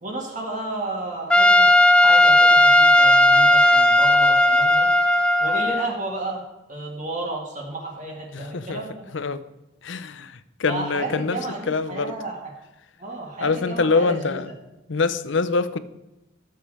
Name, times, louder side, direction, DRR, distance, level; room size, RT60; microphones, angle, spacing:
voice 1, 0.0-4.9 5.4-6.4 6.7-9.1 10.7-12.5 13.0-14.4, right 2 dB, 40° right, 2.2 m, -32 dB
Trumpet, 1.3-5.9, left 1 dB, 5° left, 0.3 m, -15 dB
voice 2, 8.3-8.8 9.1-9.4 9.8-11.4 11.7-12.1 13.4-14.5 14.9-15.8, left 4 dB, 65° left, 0.6 m, -24 dB
13.0 x 7.6 x 4.9 m
head